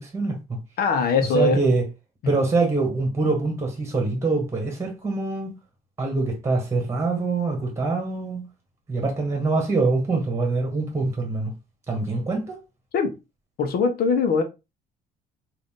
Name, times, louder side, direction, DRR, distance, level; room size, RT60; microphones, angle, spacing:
voice 1, 0.0-0.6 1.3-1.8 2.3-5.5 6.0-8.4 8.9-11.5 11.9-12.6, right 3 dB, 15° right, 1.5 m, -24 dB
voice 2, 0.8-1.6 2.2-2.3 12.9-13.1 13.6-14.4, left 4 dB, 65° left, 0.9 m, -21 dB
3.8 x 2.6 x 3.7 m
cardioid pair, 110°, 17 cm